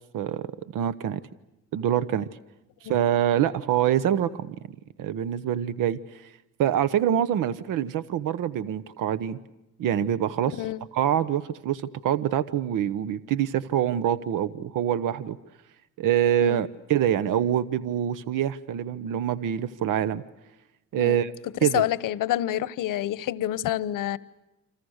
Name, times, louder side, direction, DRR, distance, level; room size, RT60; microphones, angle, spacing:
voice 1, 0.1-1.2 1.7-2.3 2.8-4.6 5.0-6.3 6.6-9.4 9.8-10.6 10.9-15.4 16.0-20.2 20.9-21.3 21.6-21.8, right 10 dB, 85° right, 1.1 m, -25 dB
voice 2, 21.7-24.2, left 13 dB, 90° left, 1.0 m, -28 dB
29.0 x 26.5 x 6.5 m
cardioid pair, 140°, 31 cm